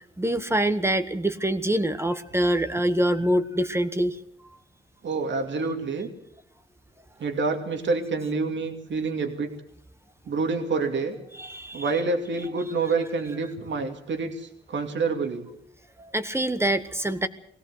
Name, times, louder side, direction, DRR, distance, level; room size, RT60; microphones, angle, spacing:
voice 1, 0.2-4.2 11.4-11.8 16.0-17.3, right 1 dB, 15° right, 10 dB, 1.3 m, -25 dB
voice 2, 5.0-6.1 7.2-9.5 10.3-11.2 11.7-15.5, right 4 dB, 70° right, 4 dB, 2.6 m, -27 dB
21.5 x 17.0 x 8.0 m, 0.71 s
cardioid pair, 90°, 20 cm